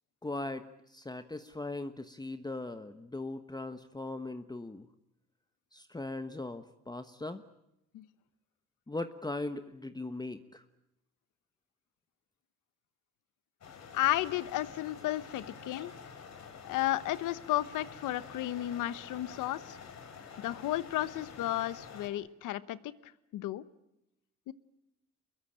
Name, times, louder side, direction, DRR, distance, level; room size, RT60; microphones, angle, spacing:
voice 1, 0.2-4.9 5.7-7.4 8.9-10.6, left 2 dB, 15° left, 9 dB, 1.2 m, -39 dB
sound 1, 13.6-22.1, left 6 dB, 60° left, 4.9 m, -48 dB
voice 2, 13.9-15.9 16.6-19.8 20.4-23.6 24.5-24.6, left 14 dB, 90° left, 16 dB, 1.1 m, -33 dB
25.0 x 21.5 x 8.8 m, 0.86 s
cardioid pair, 90°, 30 cm